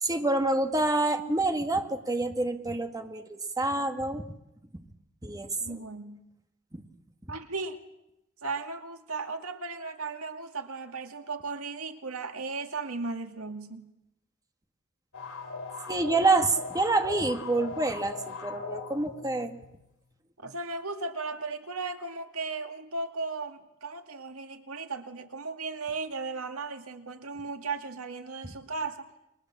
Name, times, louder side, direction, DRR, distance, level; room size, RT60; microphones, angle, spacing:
voice 1, 0.0-4.3 5.2-5.8 6.7-6.8 15.9-19.6, right 2 dB, 15° right, 6 dB, 1.7 m, -27 dB
voice 2, 5.6-6.2 7.3-7.8 8.4-13.8 20.4-29.1, right 3 dB, 75° right, 6 dB, 2.2 m, -36 dB
sound 1, 15.1-19.8, left 4 dB, 80° left, 4.1 m, -40 dB
30.0 x 23.0 x 7.5 m, 0.88 s
head